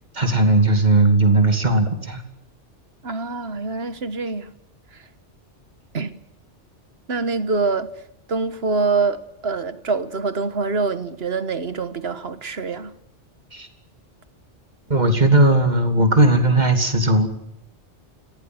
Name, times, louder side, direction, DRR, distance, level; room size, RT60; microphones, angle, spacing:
voice 1, 0.1-2.2 13.5-13.7 14.9-17.3, right 2 dB, 40° right, 3.0 m, -17 dB
voice 2, 3.0-4.5 4.9-5.0 5.9-6.2 7.1-7.9 8.3-12.9, right 4 dB, 60° right, 1.7 m, -25 dB
26.0 x 17.0 x 7.9 m
omnidirectional pair, 1.2 m